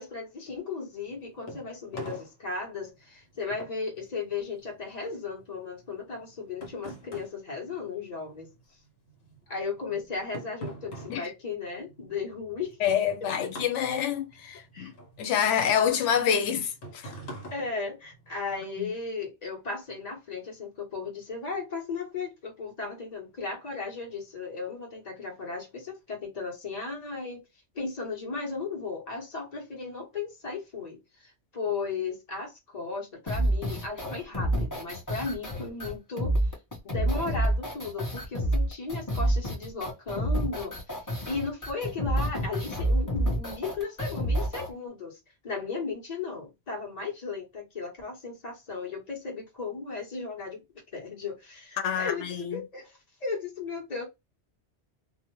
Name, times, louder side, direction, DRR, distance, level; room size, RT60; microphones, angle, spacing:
voice 1, 0.0-8.5 9.5-12.8 13.2-13.5 14.7-14.9 17.5-27.4 27.7-36.4 36.8-45.2 45.4-50.6 50.9-54.0, left 4 dB, 35° left, 1.1 m, -36 dB
sound 1, 1.0-8.6 8.9-18.6, equal, 65° left, 1.2 m, -45 dB
voice 2, 12.8-14.9 15.2-17.1 18.8-18.9 51.8-52.6, left 8 dB, 90° left, 0.9 m, -27 dB
sound 2, 33.3-44.7, right 1 dB, 20° left, 0.9 m, -28 dB
2.5 x 2.1 x 2.9 m
omnidirectional pair, 1.2 m